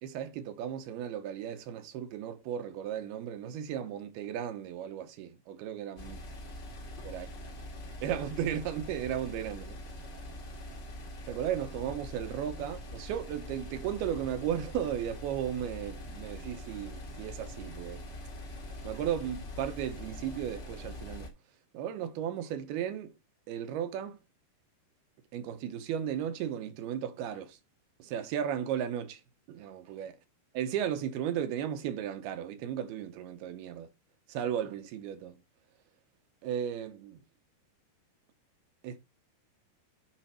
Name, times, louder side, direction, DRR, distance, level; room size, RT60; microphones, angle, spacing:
voice 1, 0.0-6.2 7.0-7.3 8.0-9.8 11.3-18.1 18.8-21.3 21.7-23.1 23.5-24.2 25.3-27.6 28.0-29.2 29.5-30.1 30.5-33.9 34.3-35.4 36.4-37.2 38.8-39.0, right 9 dB, 80° right, 2.8 m, -35 dB
sound 1, 6.0-21.3, left 1 dB, 40° left, 1.9 m, -43 dB
9.0 x 5.5 x 4.4 m
omnidirectional pair, 4.7 m